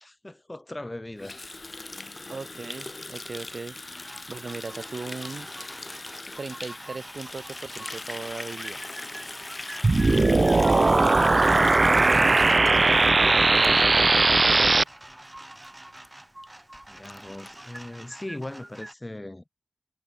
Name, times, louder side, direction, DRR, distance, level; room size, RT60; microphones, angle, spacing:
voice 1, 0.0-1.5 11.9-12.4 16.9-19.4, left 1 dB, 30° left, 4.1 m, -39 dB
Water tap faucet, 1.2-14.2 14.5-14.7 15.0-15.4 15.6-15.7 16.0-16.1 16.4-16.5 16.7-17.8, left 2 dB, 50° left, 1.0 m, -39 dB
voice 2, 2.3-3.8 4.3-5.5 6.4-8.8 11.1-14.2 14.5-14.9, right 4 dB, 85° right, 7.1 m, -38 dB
sound 1, 3.9-18.9, right 1 dB, 25° right, 4.6 m, -45 dB
sound 2, 9.8-14.8, right 3 dB, 60° right, 0.4 m, -19 dB
wide cardioid pair, 50°, 0 cm